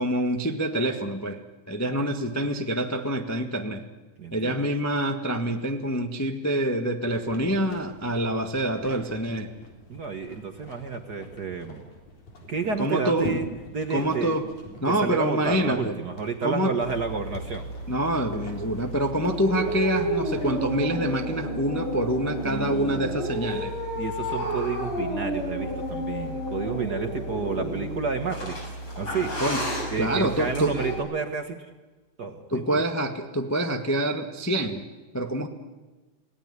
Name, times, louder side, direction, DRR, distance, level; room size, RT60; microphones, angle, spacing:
voice 1, 0.0-1.4 1.7-3.8 4.3-9.5 12.8-13.3 13.9-14.4 14.8-15.9 16.4-16.7 17.9-23.7 27.6-27.7 29.4-29.6 30.0-30.8 32.5-34.8 35.1-35.5, right 1 dB, 15° left, 4 dB, 0.6 m, -26 dB
voice 2, 4.2-4.6 9.9-11.8 12.5-13.5 13.7-14.4 14.8-17.7 22.4-23.2 24.0-29.3 29.9-31.6 32.2-32.8, right 5 dB, 45° right, 6 dB, 1.4 m, -30 dB
sound 1, 7.1-20.6, left 2 dB, 80° left, 5.5 m, -43 dB
sound 2, 16.8-31.0, right 1 dB, 45° left, 8.0 m, -31 dB
28.0 x 18.5 x 9.8 m, 1.2 s
omnidirectional pair, 3.4 m